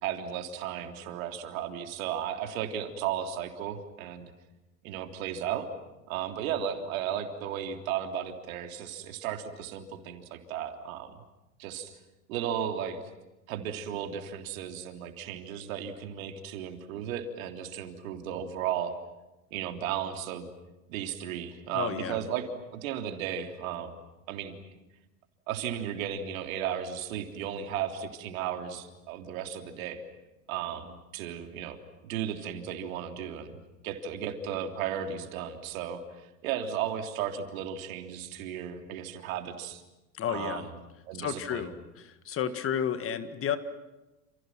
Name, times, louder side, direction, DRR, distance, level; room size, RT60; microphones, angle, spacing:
voice 1, 0.0-4.3 4.8-5.7 6.1-11.2 11.6-12.0 12.3-13.0 13.5-18.9 19.5-20.5 20.9-24.0 24.3-24.6 25.5-30.0 30.5-31.8 32.0-39.8 40.3-40.6 41.1-41.6, right 9 dB, 55° right, 5 dB, 3.4 m, -35 dB
voice 2, 21.7-22.3 40.1-40.7 41.1-43.6, left 8 dB, 25° left, 11 dB, 1.8 m, -32 dB
29.5 x 29.0 x 6.1 m, 1.0 s
figure-of-eight pair, 95°, 48 cm